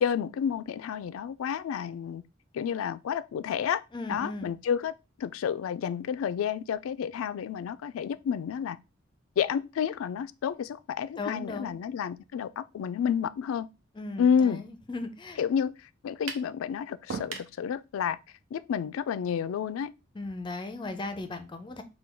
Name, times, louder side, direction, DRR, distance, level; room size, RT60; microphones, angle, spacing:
voice 1, 0.0-2.2 2.5-3.8 4.1-8.8 9.4-13.7 14.2-14.6 15.4-18.2 18.5-19.9, left 7 dB, 90° left, 0.3 m, -30 dB
voice 2, 3.9-4.5 11.2-11.7 14.0-15.4 20.1-21.8, left 2 dB, 25° left, 0.4 m, -37 dB
sound 1, 16.3-16.5 17.1-17.5, right 4 dB, 80° right, 0.7 m, -36 dB
3.7 x 2.3 x 4.3 m
head